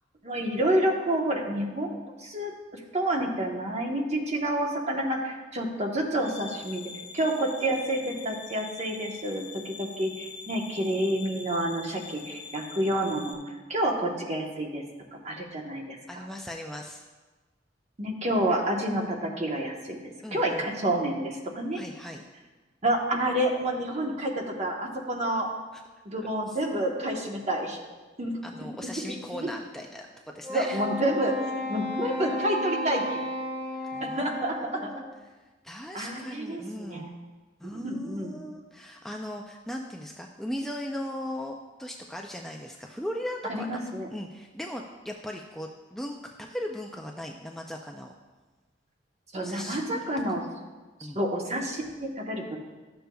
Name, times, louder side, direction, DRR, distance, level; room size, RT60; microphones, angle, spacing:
voice 1, 0.2-2.5 2.9-6.8 7.1-13.4 13.7-14.8 15.2-16.3 18.0-20.0 20.3-21.8 22.8-25.5 26.0-27.8 28.2-28.3 29.3-29.5 30.5-31.4 31.7-33.2 34.1-34.9 35.9-37.1 37.7-38.4 43.5-44.1 49.3-50.4 51.1-52.6, right 1 dB, 40° right, 1 dB, 1.0 m, -29 dB
sound 1, 6.2-13.3, left 5 dB, 80° left, 1.1 m, -44 dB
voice 2, 16.1-17.0 20.2-20.7 21.7-22.2 25.7-25.8 26.5-26.6 28.4-30.8 33.9-35.0 35.6-37.1 37.6-43.8 44.1-48.1 49.4-50.0 51.0-51.2, equal, ahead, 1 dB, 0.3 m, -38 dB
Wind instrument woodwind instrument, 30.4-35.0, left 1 dB, 25° right, 2.3 m, -33 dB
12.5 x 6.7 x 2.3 m, 1.3 s
head